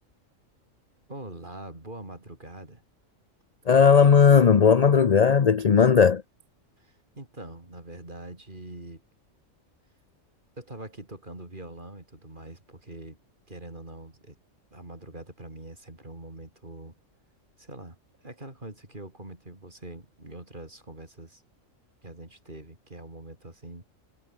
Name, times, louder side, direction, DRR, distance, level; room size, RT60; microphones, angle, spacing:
voice 1, 1.1-2.8 6.8-9.0 10.6-13.2 13.5-14.3 14.7-16.9 17.6-18.0 18.2-21.4 22.0-23.8, right 1 dB, 35° right, 4.7 m, -43 dB
voice 2, 3.7-6.2, left 6 dB, 40° left, 0.6 m, -17 dB
omnidirectional pair, 1.4 m